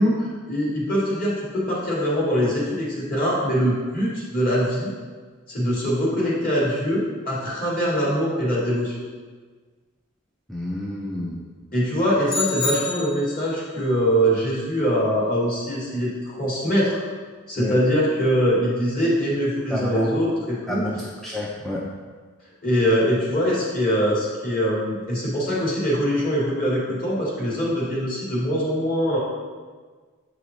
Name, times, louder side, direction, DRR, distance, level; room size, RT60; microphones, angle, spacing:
voice 1, 0.0-4.9 5.5-8.9 11.7-17.0 17.5-21.1 22.6-29.2, equal, 40° left, -5 dB, 2.1 m, -23 dB
voice 2, 10.5-11.4 17.6-17.7 19.7-20.1 20.7-21.8, left 1 dB, ahead, -5 dB, 0.5 m, -29 dB
sound 1, 12.3-13.6, left 3 dB, 90° left, 1.8 m, -28 dB
7.8 x 4.9 x 3.9 m, 1.5 s
head